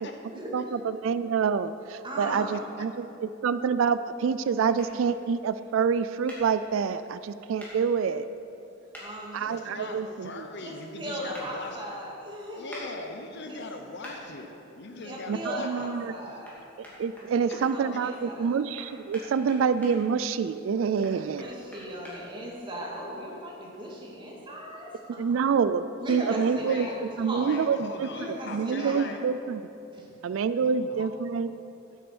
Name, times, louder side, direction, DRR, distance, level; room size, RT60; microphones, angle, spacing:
voice 1, 0.0-0.8 2.0-2.6 9.0-10.1 10.6-12.8 13.5-13.6 15.0-16.6 17.2-18.6 21.1-25.2 26.0-27.6 28.1-29.0 29.9-30.1, equal, 25° right, -4 dB, 2.3 m, -38 dB
voice 2, 0.5-8.3 9.3-10.5 15.3-16.1 17.0-21.5 25.1-29.6 30.2-31.5, right 6 dB, 70° right, 13 dB, 0.3 m, -27 dB
sound 1, 4.8-4.9 6.3-6.4 7.6-7.7 8.9-9.1 11.3-11.5 12.7-12.9 14.0-14.2 16.4-16.6 16.8-17.6 18.8-19.9 21.0-22.2, left 1 dB, 10° left, 2.9 m, -44 dB
voice 3, 9.5-11.8 12.6-16.4 17.5-17.6 26.6-26.9 27.3-29.2 30.6-31.1, left 2 dB, 60° left, 5 dB, 1.0 m, -41 dB
12.0 x 8.5 x 6.1 m, 2.9 s
head